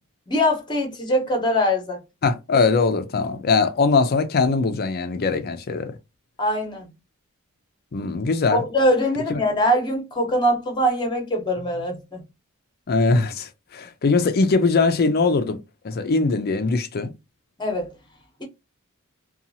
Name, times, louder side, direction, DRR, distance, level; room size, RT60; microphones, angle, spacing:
voice 1, 0.3-2.0 6.4-6.9 8.5-12.2 17.6-17.9, equal, 20° left, 0.9 m, -22 dB
voice 2, 2.2-5.9 7.9-8.6 9.3-9.4 12.9-15.6 15.8-17.1, left 4 dB, 45° left, 0.4 m, -21 dB
2.8 x 2.3 x 2.6 m
head